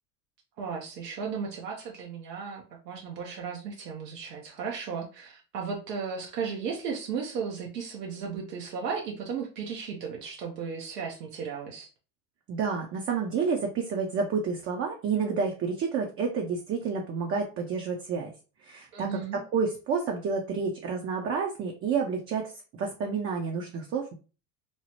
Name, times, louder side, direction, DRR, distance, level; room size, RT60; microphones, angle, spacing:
voice 1, 0.6-11.9 18.9-19.4, right 6 dB, 85° right, -1 dB, 0.7 m, -35 dB
voice 2, 12.5-18.3 18.6-24.1, right 5 dB, 30° right, 2 dB, 0.4 m, -30 dB
3.0 x 2.0 x 2.7 m, 0.34 s
hypercardioid pair, 85°, 47 cm